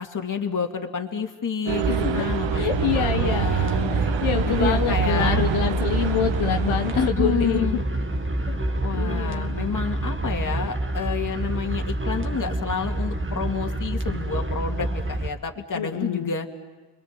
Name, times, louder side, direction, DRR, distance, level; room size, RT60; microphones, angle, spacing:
voice 1, 0.0-3.9 4.5-5.4 6.9-7.8 8.8-16.5, left 5 dB, 40° left, 3 dB, 2.5 m, -29 dB
sound 1, 1.7-7.1, right 11 dB, 65° right, 0.9 m, -26 dB
sound 2, 1.8-15.3, right 1 dB, 25° right, 1.9 m, -27 dB
voice 2, 1.9-2.2 2.5-3.5 3.9-7.8 8.5-8.6 8.9-9.6 15.7-16.3, left 9 dB, 90° left, 4 dB, 1.2 m, -26 dB
29.0 x 23.0 x 7.6 m, 1.3 s
cardioid pair, 80°, 48 cm